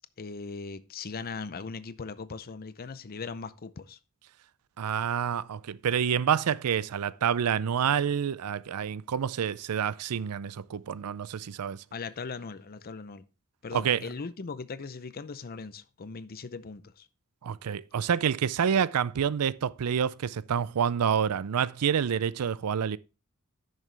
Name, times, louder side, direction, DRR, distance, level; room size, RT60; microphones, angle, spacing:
voice 1, 0.2-4.0 11.9-13.2 13.6-17.1, left 4 dB, 45° left, 0.6 m, -39 dB
voice 2, 4.8-11.8 13.7-14.0 17.4-23.0, right 8 dB, 90° right, 0.4 m, -28 dB
10.5 x 6.5 x 3.3 m
head